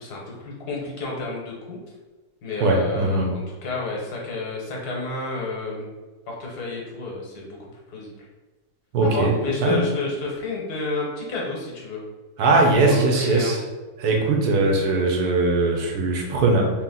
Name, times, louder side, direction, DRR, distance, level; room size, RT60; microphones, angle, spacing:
voice 1, 0.0-1.8 2.4-5.9 6.3-8.1 9.0-12.0 12.9-13.5, left 3 dB, 85° left, -2 dB, 1.5 m, -30 dB
voice 2, 2.6-3.3 8.9-9.3 9.6-9.8 12.4-13.6 14.0-16.7, right 2 dB, 85° right, 1 dB, 1.3 m, -20 dB
3.4 x 2.9 x 3.7 m, 1.2 s
omnidirectional pair, 1.6 m